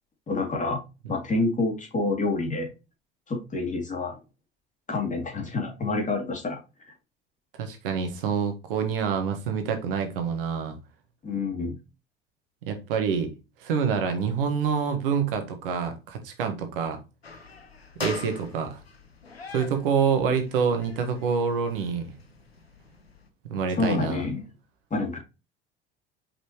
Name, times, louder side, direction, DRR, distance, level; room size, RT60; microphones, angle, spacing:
voice 1, 0.3-0.8 1.1-2.7 3.3-4.2 4.9-6.6 11.2-11.7 23.7-24.5 24.9-25.2, left 3 dB, 25° left, 2.8 m, -27 dB
voice 2, 7.6-10.8 12.6-13.3 13.6-17.0 18.0-18.8 19.5-22.1 23.5-24.3, right 6 dB, 65° right, 1.5 m, -27 dB
sound 1, 17.2-23.3, left 4 dB, 85° left, 0.9 m, -42 dB
5.9 x 5.4 x 3.0 m
figure-of-eight pair, 65°, 30 cm